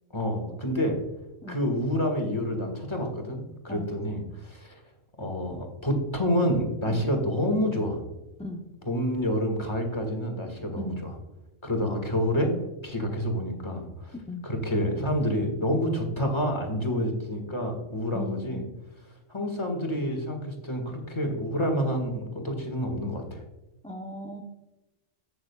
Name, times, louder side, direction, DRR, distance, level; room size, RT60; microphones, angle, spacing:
voice 1, 0.1-1.0 1.5-4.8 5.2-8.0 8.9-11.1 11.6-12.5 12.8-14.1 14.4-18.6 19.3-23.4, equal, 25° left, 3 dB, 1.8 m, -28 dB
voice 2, 18.1-18.6 23.8-24.4, left 1 dB, 10° left, 2 dB, 0.5 m, -37 dB
15.0 x 6.6 x 2.3 m, 1.0 s
omnidirectional pair, 1.3 m